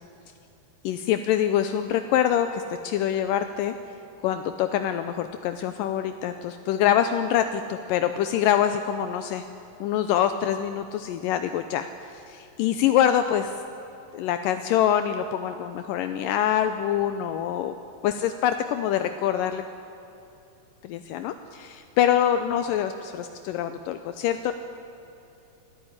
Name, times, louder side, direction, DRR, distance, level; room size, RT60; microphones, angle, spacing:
voice 1, 0.8-3.7 4.2-9.4 9.8-13.5 14.1-17.7 18.0-19.6 20.8-24.5, left 10 dB, 80° left, 9 dB, 2.3 m, -25 dB
24.0 x 13.5 x 9.8 m, 2.8 s
omnidirectional pair, 4.1 m